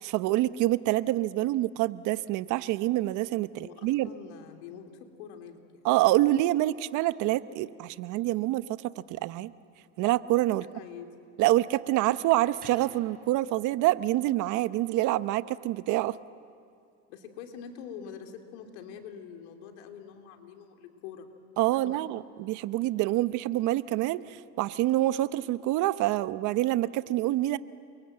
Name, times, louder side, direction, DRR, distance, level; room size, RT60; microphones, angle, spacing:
voice 1, 0.0-4.1 5.8-9.5 10.0-10.6 11.4-16.2 21.6-27.6, right 16 dB, 60° right, 15 dB, 0.9 m, -26 dB
voice 2, 3.5-5.9 10.5-11.3 17.1-21.3 21.7-22.0, left 7 dB, 90° left, 4 dB, 2.9 m, -45 dB
Crackle, 12.1-13.7, right 4 dB, 25° right, 4.7 m, -52 dB
29.5 x 23.5 x 7.9 m, 2.3 s
supercardioid pair, 115°, 34 cm